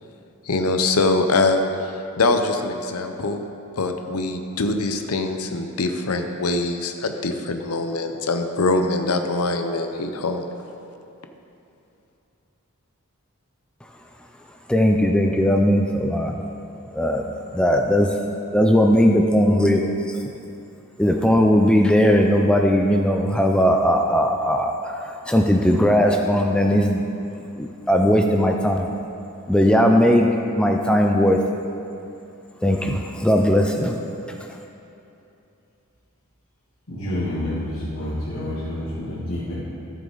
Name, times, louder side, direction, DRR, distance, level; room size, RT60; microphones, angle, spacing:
voice 1, 0.5-1.7 2.2-3.4 3.8-10.5, left 3 dB, 85° left, 6 dB, 0.7 m, -23 dB
voice 2, 14.7-16.4 16.9-17.3 17.5-18.2 18.5-20.2 21.0-27.0 27.6-28.9 29.5-30.3 30.6-31.4 32.6-34.0, equal, 5° left, 2 dB, 0.4 m, -18 dB
voice 3, 36.9-39.5, left 1 dB, 65° left, -12 dB, 2.3 m, -28 dB
13.0 x 7.6 x 3.9 m, 2.7 s
head